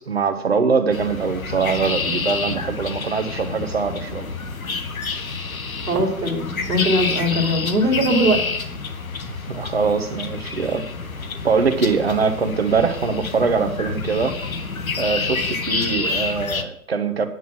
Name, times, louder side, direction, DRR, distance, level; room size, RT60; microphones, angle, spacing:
voice 1, 0.1-4.3 9.5-10.9 11.4-14.3 15.0-17.3, right 5 dB, 40° right, 1.2 m, -22 dB
sound 1, 0.9-16.6, left 4 dB, 60° left, 1.5 m, -28 dB
voice 2, 5.8-8.4, equal, 5° right, 1.2 m, -20 dB
9.4 x 7.9 x 6.1 m
hypercardioid pair, 175°, 47 cm